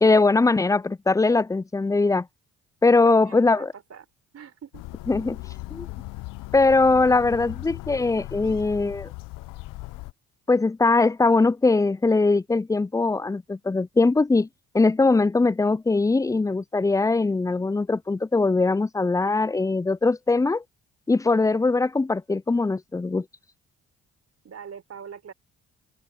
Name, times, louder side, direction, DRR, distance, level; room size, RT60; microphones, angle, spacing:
voice 1, 0.0-2.3 2.8-3.7 5.1-5.4 5.7-5.9 6.5-9.1 10.5-14.5 14.7-20.6 21.1-23.2, left 3 dB, 10° left, 0.4 m, -21 dB
voice 2, 3.0-4.1 4.3-4.8 24.4-25.3, right 7 dB, 50° right, 4.0 m, -42 dB
sound 1, 4.7-10.1, left 20 dB, 70° left, 0.7 m, -38 dB
open air
hypercardioid pair, 55°, 34 cm